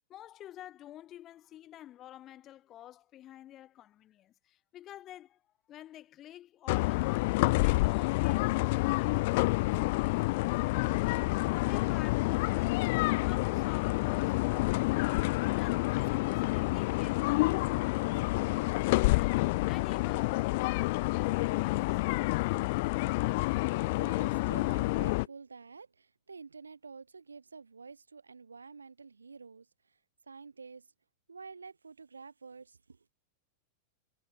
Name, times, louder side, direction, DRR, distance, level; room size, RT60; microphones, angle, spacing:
voice 1, 0.1-5.4 5.7-15.3 15.5-22.7, left 12 dB, 30° left, 4.8 m, -50 dB
sound 1, 6.7-25.3, left 23 dB, 50° left, 0.4 m, -28 dB
voice 2, 23.9-30.0 30.3-30.9 31.3-33.1, right 4 dB, 75° right, 3.7 m, -49 dB
figure-of-eight pair, 90°, 0 cm